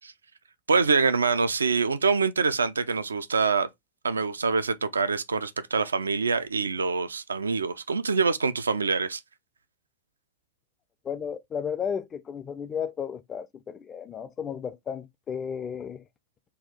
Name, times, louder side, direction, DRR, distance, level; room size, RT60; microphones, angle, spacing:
voice 1, 0.7-3.7 4.0-9.2, right 4 dB, 75° right, 0.3 m, -25 dB
voice 2, 11.0-16.0, left 7 dB, 25° left, 0.4 m, -33 dB
4.2 x 2.3 x 3.6 m
figure-of-eight pair, 90°, 0 cm